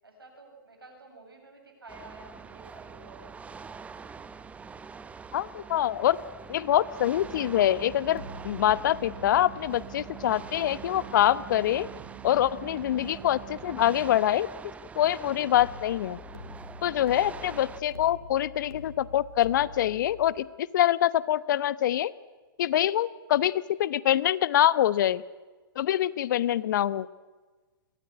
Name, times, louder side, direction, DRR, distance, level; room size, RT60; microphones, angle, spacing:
voice 1, 0.0-3.6, right 2 dB, 85° right, 3 dB, 7.9 m, -51 dB
sound 1, 1.9-17.8, right 5 dB, 10° right, 0.9 m, -45 dB
voice 2, 5.3-6.2 6.5-11.9 12.2-14.5 15.0-16.2 16.8-22.1 22.6-25.2 25.8-27.1, left 12 dB, 55° left, 19 dB, 0.9 m, -25 dB
sound 2, 7.2-14.2, right 16 dB, 35° right, 1.4 m, -46 dB
sound 3, 8.1-13.2 15.6-20.3, left 4 dB, 90° left, 3.0 m, -47 dB
22.5 x 17.5 x 9.9 m, 1.3 s
hypercardioid pair, 120°, 12 cm